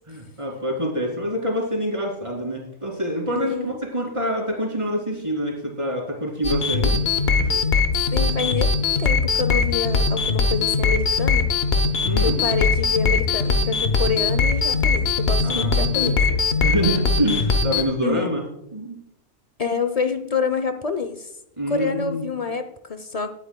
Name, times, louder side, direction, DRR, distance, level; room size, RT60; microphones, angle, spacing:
voice 1, 0.1-7.0 7.3-7.6 12.0-12.4 15.4-16.4 16.6-18.4 18.7-19.0 21.6-22.2, equal, 25° right, 0 dB, 2.7 m, -26 dB
voice 2, 3.3-3.8 8.1-8.7 9.0-11.5 12.0-16.1 18.0-18.4 19.6-21.3 21.7-23.3, left 5 dB, 40° left, 9 dB, 0.6 m, -27 dB
sound 1, 6.4-17.8, left 4 dB, 60° left, 1.1 m, -21 dB
19.5 x 8.0 x 2.2 m, 0.79 s
omnidirectional pair, 1.2 m